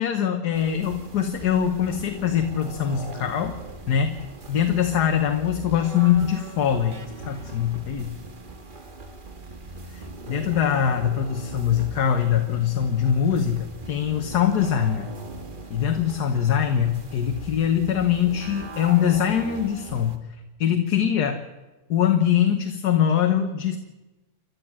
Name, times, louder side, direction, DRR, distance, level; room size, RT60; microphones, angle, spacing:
voice 1, 0.0-3.5 3.9-4.2 4.5-7.0 7.3-8.1 9.9-15.1 15.7-20.2 20.6-21.4 21.9-23.8, left 9 dB, 75° left, 6 dB, 1.7 m, -23 dB
sound 1, 0.5-20.2, right 3 dB, 35° right, 1.5 m, -40 dB
29.5 x 12.0 x 7.5 m, 1.1 s
omnidirectional pair, 1.7 m